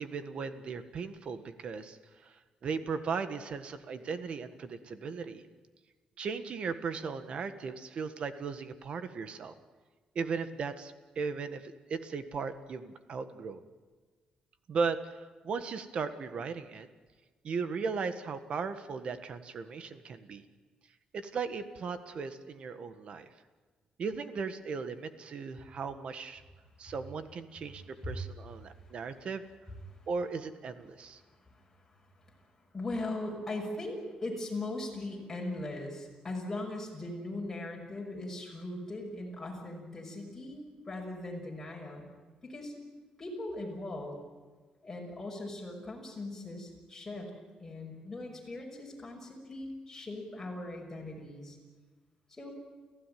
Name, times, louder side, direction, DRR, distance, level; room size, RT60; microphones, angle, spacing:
voice 1, 0.0-5.4 6.2-9.5 10.1-13.6 14.7-16.9 17.4-20.4 21.1-23.3 24.0-26.4 26.8-29.4 30.1-31.2, right 5 dB, 50° right, 10 dB, 1.5 m, -37 dB
voice 2, 31.2-32.4 32.7-42.1 42.4-42.7 43.2-44.2 44.8-47.3 47.6-51.6 52.3-52.5, left 2 dB, 15° left, -2 dB, 6.0 m, -40 dB
29.5 x 15.5 x 9.3 m, 1.4 s
wide cardioid pair, 160°, 2 cm